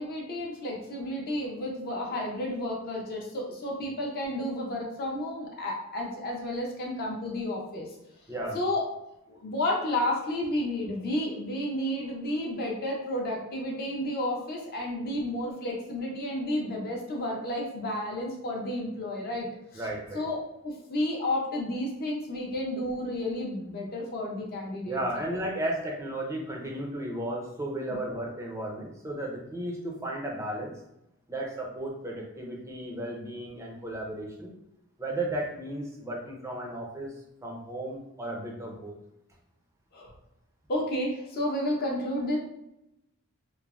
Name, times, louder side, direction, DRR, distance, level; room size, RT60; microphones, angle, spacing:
voice 1, 0.0-7.9 8.5-8.9 9.3-19.5 19.7-19.8 20.1-25.0 27.9-28.0 39.9-40.1 40.7-42.4, left 1 dB, 40° left, -1 dB, 0.5 m, -31 dB
voice 2, 8.3-8.6 19.7-20.2 24.9-30.7 31.3-34.5 35.0-37.1 37.4-38.9, right 1 dB, 15° right, -1 dB, 0.4 m, -34 dB
3.0 x 2.1 x 2.3 m, 0.85 s
head